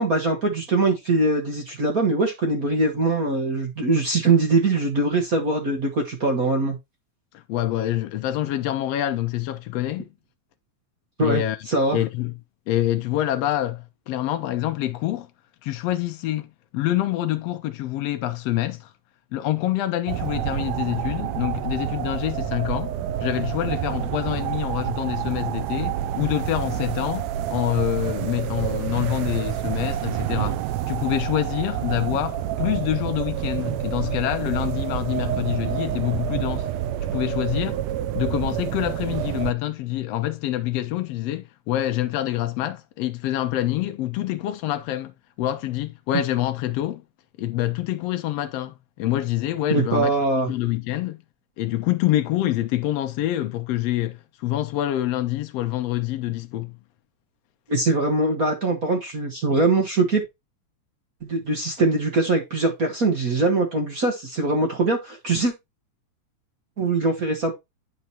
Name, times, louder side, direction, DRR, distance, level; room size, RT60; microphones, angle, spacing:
voice 1, 0.0-6.8 11.2-12.0 34.0-34.2 49.7-50.5 57.7-60.2 61.2-65.5 66.8-67.5, right 2 dB, 45° right, 1.2 m, -22 dB
voice 2, 7.3-10.1 11.2-11.6 11.9-12.3 12.7-15.3 15.6-18.9 19.3-36.7 37.1-37.8 38.1-47.0 47.4-51.2 51.6-56.7, left 14 dB, 85° left, 1.4 m, -26 dB
sound 1, 20.1-39.5, right 11 dB, 80° right, 1.6 m, -28 dB
10.5 x 4.6 x 2.9 m
omnidirectional pair, 3.6 m